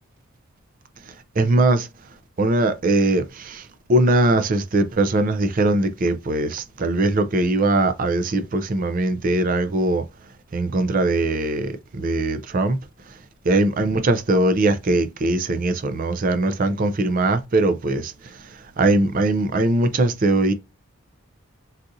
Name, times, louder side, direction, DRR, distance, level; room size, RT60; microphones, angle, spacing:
voice 1, 1.4-1.9 2.4-10.0 10.5-12.8 13.5-18.4 18.8-20.5, right 2 dB, 40° right, 0.4 m, -21 dB
4.0 x 2.4 x 2.5 m
head